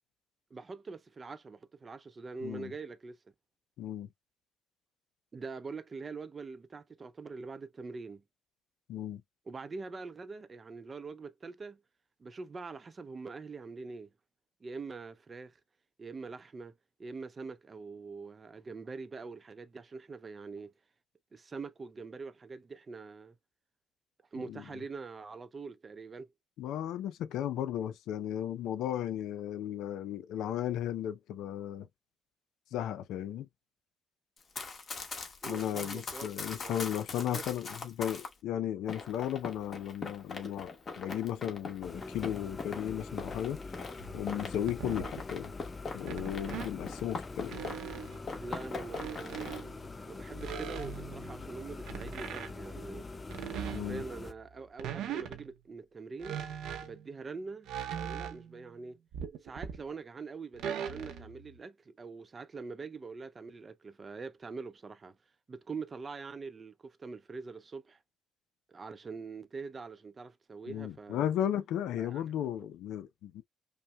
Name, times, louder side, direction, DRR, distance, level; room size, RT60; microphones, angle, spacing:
voice 1, 0.5-3.2 5.3-8.2 9.5-11.8 12.2-14.1 14.6-15.6 16.0-16.7 17.0-20.7 21.3-23.4 24.3-26.3 35.4-36.3 36.6-36.9 37.3-37.4 48.3-49.4 50.1-53.1 53.6-56.4 56.8-59.0 59.4-65.2 65.5-68.0 68.7-71.3 72.0-72.3 72.6-72.7, right 4 dB, 35° right, 0.5 m, -44 dB
voice 2, 2.4-2.7 3.8-4.1 8.9-9.2 24.5-24.6 26.6-31.9 32.7-33.5 35.4-43.6 44.1-45.5 45.9-47.6 53.7-54.0 70.7-73.4, left 10 dB, 85° left, 0.4 m, -35 dB
Run, 34.4-38.3 38.9-48.0 48.3-49.6, left 4 dB, 45° left, 1.1 m, -42 dB
sound 1, 41.8-54.3, left 3 dB, 25° left, 0.4 m, -44 dB
sound 2, 44.0-45.3 46.0-46.7 47.5-48.3 48.9-49.9 50.4-52.7 53.3-54.3 54.8-55.6 56.2-57.1 57.7-58.6 59.1-59.8 60.6-61.6, right 8 dB, 85° right, 0.7 m, -40 dB
5.4 x 2.1 x 2.2 m
cardioid pair, 90°, 0 cm